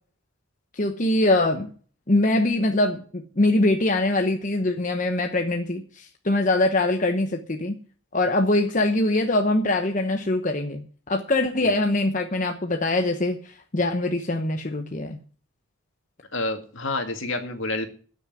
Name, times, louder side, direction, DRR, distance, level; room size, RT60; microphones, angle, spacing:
voice 1, 0.7-1.7 2.1-7.8 8.1-15.2, left 2 dB, 35° left, 5 dB, 1.0 m, -23 dB
voice 2, 16.3-17.9, left 2 dB, 65° left, 6 dB, 2.3 m, -28 dB
12.5 x 6.6 x 9.6 m, 0.42 s
head